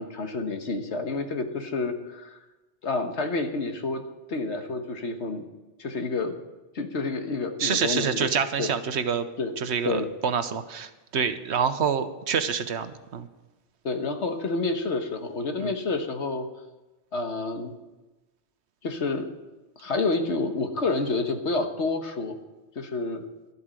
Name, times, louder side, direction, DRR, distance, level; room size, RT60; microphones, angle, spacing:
voice 1, 0.0-2.4 2.8-4.0 4.3-5.4 5.8-6.3 6.7-8.3 8.6-8.7 9.4-9.5 9.8-10.1 13.8-16.5 17.1-17.7 18.8-19.3 19.8-22.4 22.7-23.2, left 3 dB, 75° left, 6 dB, 1.5 m, -29 dB
voice 2, 7.6-9.3 9.6-13.3 15.6-15.7, right 7 dB, 70° right, 10 dB, 1.1 m, -27 dB
12.5 x 8.1 x 7.6 m, 1.1 s
omnidirectional pair, 1.2 m